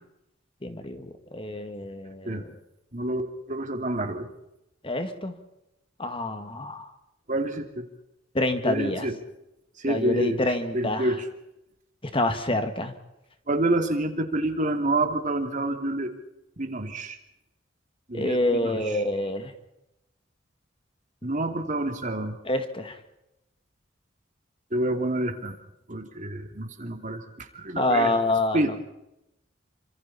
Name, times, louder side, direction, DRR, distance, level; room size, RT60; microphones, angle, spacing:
voice 1, 0.6-2.5 4.8-5.4 6.0-6.9 8.3-9.1 9.8-11.1 12.0-12.9 18.1-19.5 22.4-23.0 27.8-28.6, left 2 dB, 30° left, 8 dB, 2.0 m, -27 dB
voice 2, 3.5-4.3 7.3-7.8 8.7-9.1 9.8-10.4 10.7-11.2 13.5-16.1 16.6-17.2 18.1-18.9 21.2-22.4 24.7-25.6 25.9-28.1 28.5-28.7, right 1 dB, 40° right, 5 dB, 2.9 m, -28 dB
28.5 x 26.0 x 4.4 m, 0.88 s
head